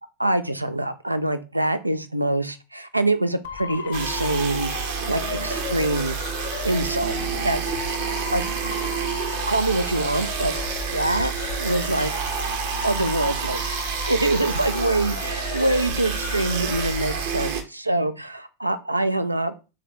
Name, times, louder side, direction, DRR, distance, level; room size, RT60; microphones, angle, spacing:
voice 1, 0.2-4.7 5.1-6.2 6.6-7.6 8.3-8.4 9.5-10.6 10.9-11.3 11.6-12.1 12.8-13.6 14.1-19.5, right 2 dB, 85° right, 11 dB, 0.4 m, -24 dB
Motor vehicle (road) / Siren, 3.4-17.2, left 9 dB, 55° left, 0.5 m, -35 dB
sound 1, 3.9-17.6, right 7 dB, 55° right, 0.9 m, -29 dB
3.7 x 3.4 x 3.1 m, 0.31 s
figure-of-eight pair, 90°, 0 cm